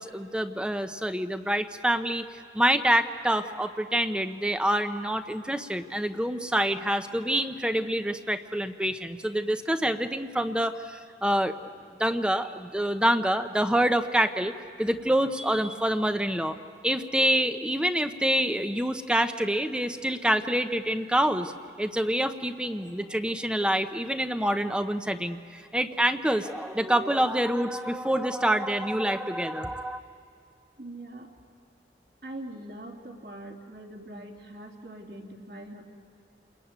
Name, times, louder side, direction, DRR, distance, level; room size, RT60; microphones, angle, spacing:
voice 1, 0.0-11.5 12.0-14.5 14.8-16.6 16.8-21.5 21.8-30.0, right 1 dB, 5° right, 8 dB, 0.8 m, -26 dB
voice 2, 30.8-31.3 32.2-35.8, right 1 dB, 55° right, 1 dB, 3.1 m, -42 dB
29.0 x 21.5 x 9.1 m, 2.5 s
head